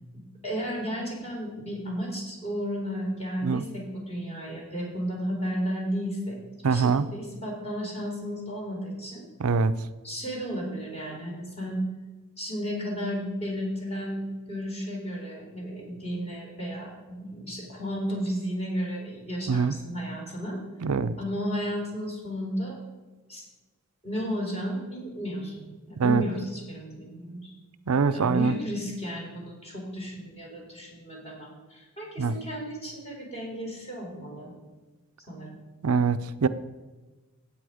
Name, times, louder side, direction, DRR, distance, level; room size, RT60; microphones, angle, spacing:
voice 1, 0.1-6.4 6.7-9.2 10.0-11.8 12.4-20.6 21.2-22.8 23.3-23.4 24.0-27.5 28.1-34.5 35.3-35.6, equal, 30° left, 3.6 m, -33 dB
voice 2, 6.6-7.0 9.4-9.7 19.5-19.7 20.8-21.2 26.0-26.2 27.9-28.6 32.2-32.4 35.8-36.5, right 5 dB, 85° right, 0.5 m, -23 dB
13.0 x 8.5 x 4.9 m
head